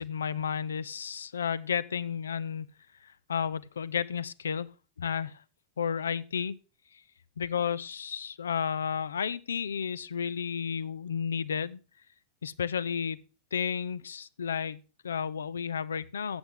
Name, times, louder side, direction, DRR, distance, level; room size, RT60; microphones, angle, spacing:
voice 1, 0.0-2.7 3.0-4.7 5.0-5.4 5.8-6.6 7.4-11.8 12.4-13.2 13.5-16.4, left 7 dB, 70° left, 0.4 m, -32 dB
13.0 x 7.9 x 3.7 m
figure-of-eight pair, 90°, 0 cm